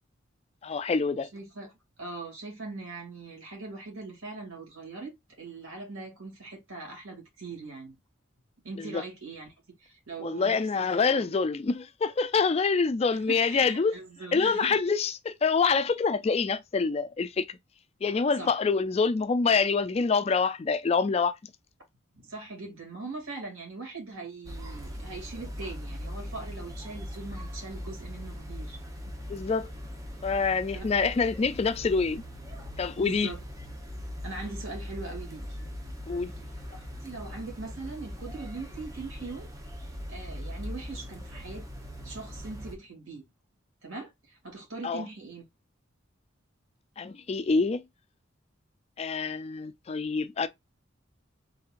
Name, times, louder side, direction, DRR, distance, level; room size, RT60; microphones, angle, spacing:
voice 1, 0.6-1.3 8.8-9.0 10.2-14.0 14.3-17.6 18.0-21.3 29.3-29.7 30.2-32.2 32.8-33.3 36.1-36.3 44.8-45.0 47.0-47.8 49.0-50.5, left 4 dB, 30° left, 0.3 m, -26 dB
voice 2, 1.3-8.0 8.6-9.5 9.8-11.3 13.1-14.8 18.3-18.6 22.1-29.1 30.7-31.1 33.0-33.4 34.2-35.6 36.7-39.5 40.1-41.6 42.0-43.2 43.8-45.4, right 3 dB, 90° right, 2.4 m, -41 dB
sound 1, 24.4-42.8, equal, 15° right, 0.9 m, -40 dB
4.1 x 3.7 x 2.5 m
head